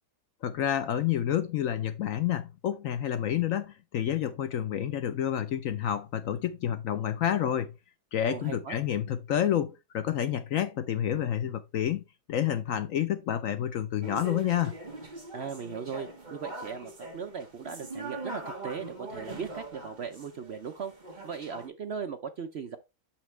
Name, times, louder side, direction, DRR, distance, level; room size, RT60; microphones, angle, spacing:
voice 1, 0.4-7.7 8.1-12.0 12.3-14.7, left 10 dB, 65° left, 0.9 m, -29 dB
voice 2, 8.3-8.8 15.3-20.9 21.2-22.8, right 6 dB, 55° right, 0.7 m, -38 dB
sound 1, 14.0-21.7, right 2 dB, 30° right, 1.6 m, -42 dB
7.2 x 5.8 x 3.2 m
omnidirectional pair, 1.7 m